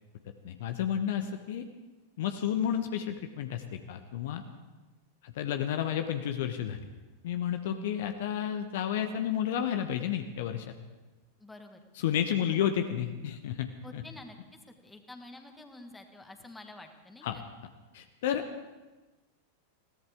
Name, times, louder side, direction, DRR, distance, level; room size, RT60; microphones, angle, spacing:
voice 1, 0.4-1.6 2.2-4.4 5.2-6.8 7.2-10.7 12.0-14.0 17.2-17.4 17.9-18.4, left 9 dB, 55° left, 7 dB, 1.0 m, -31 dB
voice 2, 11.4-11.8 13.8-14.4 14.8-17.4, left 2 dB, 10° left, 5 dB, 1.8 m, -49 dB
21.5 x 17.0 x 3.6 m, 1.2 s
figure-of-eight pair, 90°, 0 cm